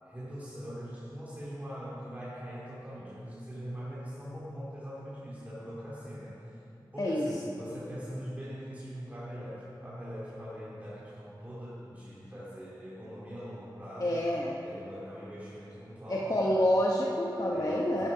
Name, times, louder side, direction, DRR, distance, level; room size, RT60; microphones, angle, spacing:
voice 1, 0.0-6.6 6.9-14.1 14.6-16.6 17.5-18.1, equal, 20° right, -9 dB, 3.0 m, -42 dB
voice 2, 14.0-14.6 16.1-18.1, left 1 dB, 45° left, -3 dB, 1.1 m, -28 dB
11.5 x 11.0 x 5.1 m, 2.8 s
wide cardioid pair, 70°, 8 cm